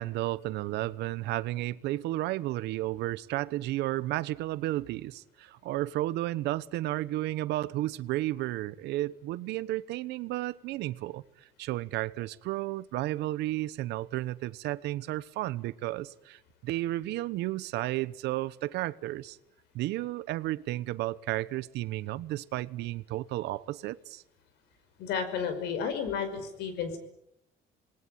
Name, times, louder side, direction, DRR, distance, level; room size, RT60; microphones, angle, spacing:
voice 1, 0.0-11.2 11.6-19.4 19.7-24.2, right 16 dB, 85° right, 1.0 m, -33 dB
voice 2, 25.0-27.0, left 6 dB, 85° left, 5.5 m, -32 dB
27.5 x 20.0 x 9.3 m
cardioid pair, 110°, 17 cm